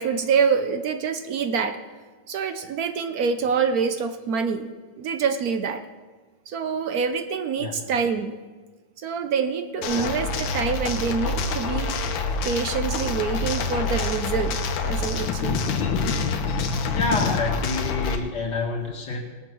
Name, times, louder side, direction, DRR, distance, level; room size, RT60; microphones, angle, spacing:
voice 1, 0.0-1.8 2.3-4.7 5.0-5.8 6.5-8.3 9.0-12.0 12.5-15.6, right 6 dB, 65° right, 9 dB, 1.0 m, -26 dB
sound 1, 9.8-18.2, left 4 dB, 75° left, 1.7 m, -26 dB
voice 2, 16.9-19.2, left 3 dB, 60° left, -1 dB, 2.8 m, -28 dB
19.5 x 7.2 x 6.1 m, 1.3 s
omnidirectional pair, 2.1 m